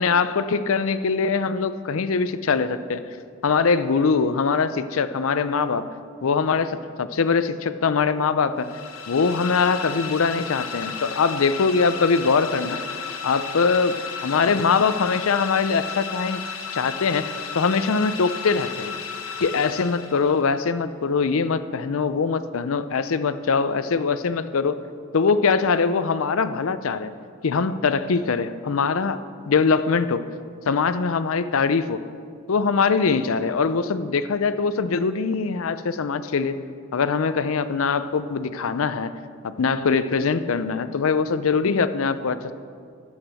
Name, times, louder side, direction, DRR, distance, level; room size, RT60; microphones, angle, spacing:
voice 1, 0.0-3.0 3.4-5.9 6.2-8.7 9.1-12.8 13.2-16.4 16.7-18.9 19.4-24.8 25.1-27.1 27.4-29.2 29.5-30.2 30.7-32.0 32.5-36.6 36.9-39.1 39.4-42.5, left 5 dB, 70° left, 12 dB, 0.5 m, -22 dB
sound 1, 8.6-20.5, left 6 dB, 90° left, 1.2 m, -34 dB
11.5 x 8.1 x 6.2 m, 2.2 s
head